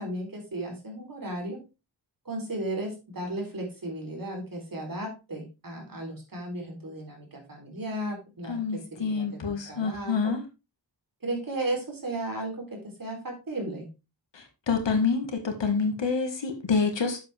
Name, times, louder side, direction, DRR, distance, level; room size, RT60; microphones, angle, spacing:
voice 1, 0.0-1.6 2.3-10.4 11.2-13.9, right 1 dB, 50° right, 3.5 m, -35 dB
voice 2, 8.5-10.4 14.3-17.2, left 5 dB, 90° left, 1.8 m, -27 dB
8.1 x 7.4 x 3.4 m
wide cardioid pair, 85°, 43 cm